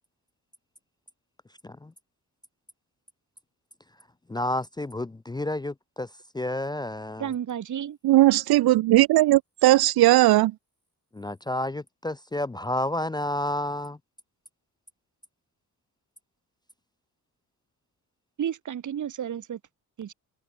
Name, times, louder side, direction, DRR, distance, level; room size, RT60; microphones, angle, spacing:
voice 1, 4.3-6.1 6.3-7.3 11.1-14.0, left 1 dB, 10° left, 0.6 m, -30 dB
voice 2, 7.2-8.0 18.4-19.6 20.0-20.1, right 9 dB, 55° right, 2.1 m, -32 dB
voice 3, 8.0-10.5, right 16 dB, 90° right, 0.8 m, -18 dB
cardioid pair, 120°, 36 cm